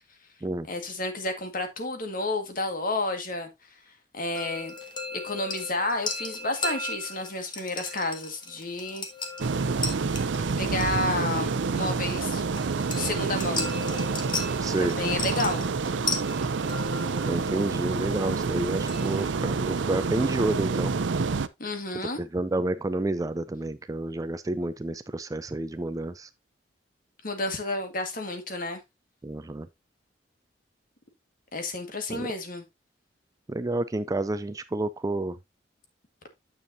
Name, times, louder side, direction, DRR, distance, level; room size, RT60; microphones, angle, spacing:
voice 1, 0.7-3.5 4.1-4.7 5.1-9.1 10.6-12.5 12.9-13.7 14.8-15.7 21.6-22.2 27.2-28.8 31.5-32.6, left 2 dB, 50° left, 1.8 m, -31 dB
sound 1, 4.3-19.2, left 3 dB, 25° left, 1.5 m, -37 dB
sound 2, 9.4-21.5, right 4 dB, 85° right, 0.6 m, -28 dB
voice 2, 14.6-14.9 17.3-20.9 22.2-26.3 29.2-29.7 32.1-32.3 33.5-35.4, right 2 dB, 20° right, 0.4 m, -29 dB
9.3 x 7.1 x 2.7 m
head